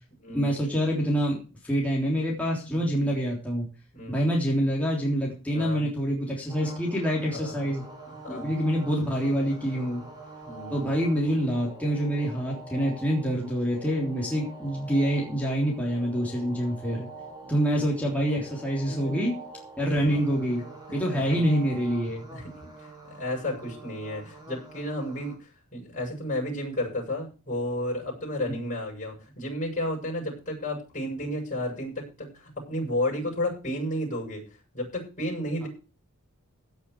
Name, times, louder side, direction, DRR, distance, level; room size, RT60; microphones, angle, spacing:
voice 1, 0.3-3.6 4.1-7.8 8.3-10.0 10.7-17.1 17.5-19.3 19.8-20.6 20.9-22.2, equal, 5° left, -3 dB, 3.5 m, -26 dB
voice 2, 2.7-3.1 4.0-4.2 5.5-5.8 7.2-7.6 8.2-8.5 10.4-10.8 17.4-17.7 18.9-19.1 20.9-21.4 22.3-22.5 22.8-25.3 25.7-34.4 34.7-35.7, left 1 dB, 35° left, -2 dB, 7.6 m, -32 dB
sound 1, 6.5-25.4, right 2 dB, 20° right, 5.2 m, -45 dB
16.5 x 8.0 x 4.8 m, 0.34 s
head